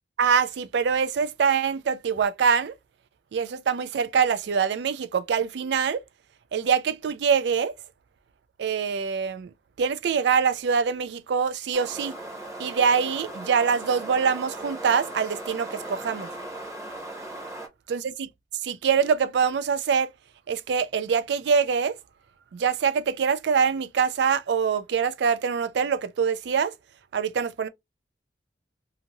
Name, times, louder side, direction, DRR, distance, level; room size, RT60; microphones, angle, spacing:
voice 1, 0.2-2.7 3.3-6.0 6.5-7.8 8.6-9.5 9.8-12.2 12.6-16.3 17.9-18.0 18.6-20.1 20.5-22.0 22.5-26.7 27.1-27.7, right 6 dB, 75° right, 0.4 m, -24 dB
sound 1, 11.7-17.7, right 1 dB, 15° right, 0.7 m, -38 dB
2.6 x 2.4 x 2.9 m
head